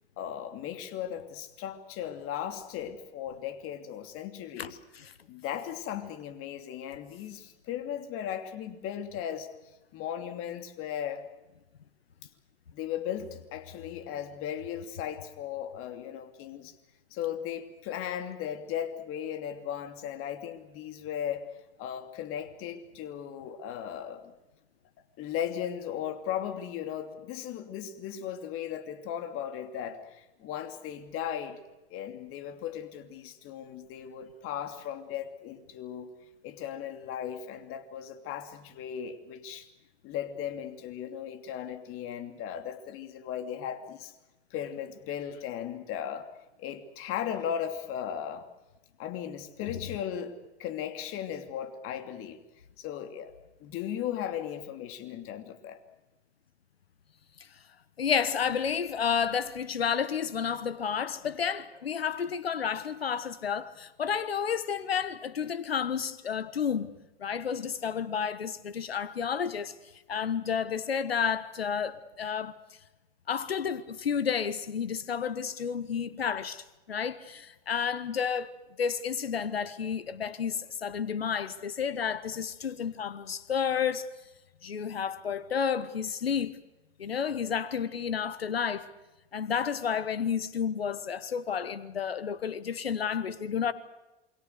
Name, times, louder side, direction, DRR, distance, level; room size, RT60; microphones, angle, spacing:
voice 1, 0.2-4.8 5.3-9.5 9.9-11.3 12.7-16.7 17.1-21.5 21.8-24.3 25.2-31.6 31.9-36.1 36.4-39.7 40.0-44.1 44.5-46.3 46.6-48.5 49.0-52.4 52.8-55.8, left 9 dB, 45° left, 2.9 m, -37 dB
voice 2, 58.0-66.9 67.2-69.7 70.1-72.5 73.3-84.1 84.6-86.6 87.0-88.9 89.3-93.7, left 7 dB, 90° left, 1.2 m, -31 dB
28.0 x 23.0 x 6.7 m
hypercardioid pair, 90°, 29 cm